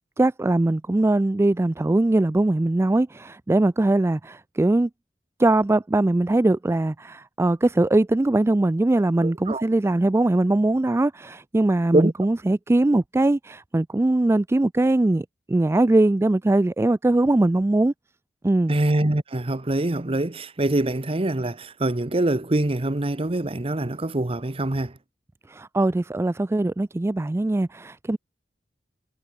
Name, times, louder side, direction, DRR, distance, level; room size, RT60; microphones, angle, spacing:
voice 1, 0.2-4.9 5.4-17.9 18.4-18.7 25.5-28.2, right 2 dB, 15° right, 0.3 m, -21 dB
voice 2, 9.2-9.6 11.9-12.1 18.7-24.9, right 1 dB, 35° right, 1.0 m, -24 dB
head